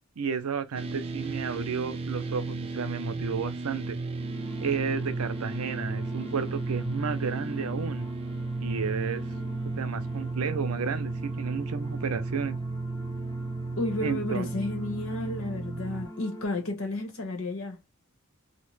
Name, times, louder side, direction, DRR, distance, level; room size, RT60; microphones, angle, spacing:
voice 1, 0.2-4.0 4.6-8.1 8.6-9.2 9.7-12.6 14.0-14.5, right 6 dB, 85° right, 0.5 m, -32 dB
sound 1, 0.7-16.1, right 3 dB, 25° right, 0.4 m, -34 dB
sound 2, 4.2-16.5, equal, 15° left, 0.8 m, -42 dB
voice 2, 13.8-17.8, left 2 dB, 75° left, 1.1 m, -32 dB
2.7 x 2.1 x 3.1 m
head